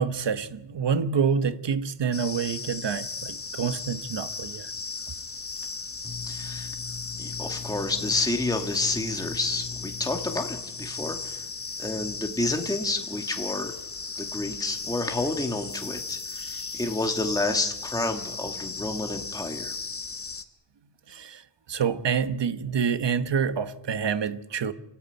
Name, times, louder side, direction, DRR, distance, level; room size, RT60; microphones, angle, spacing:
voice 1, 0.0-4.7 21.1-21.4 21.7-24.7, right 6 dB, 65° right, 1.3 m, -27 dB
sound 1, 2.1-20.4, left 4 dB, 30° left, 1.3 m, -36 dB
voice 2, 6.0-11.4 11.8-13.7 14.2-19.7, left 2 dB, 10° left, 1.7 m, -30 dB
29.0 x 14.0 x 9.0 m
wide cardioid pair, 170°, 46 cm